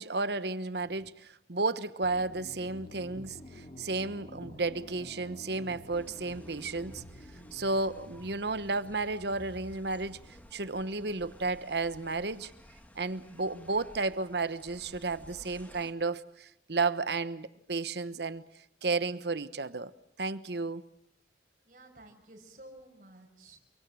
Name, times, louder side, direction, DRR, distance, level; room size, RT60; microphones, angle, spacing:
voice 1, 0.0-7.0 7.5-12.5 12.9-18.4 18.8-19.9 20.2-20.8, right 3 dB, 70° right, 1.2 m, -33 dB
sound 1, 2.0-13.5, left 1 dB, 35° left, 4.5 m, -51 dB
sound 2, 5.9-15.9, equal, 10° left, 2.4 m, -54 dB
voice 2, 21.6-23.6, right 1 dB, 50° right, 5.9 m, -53 dB
28.5 x 24.5 x 7.7 m
head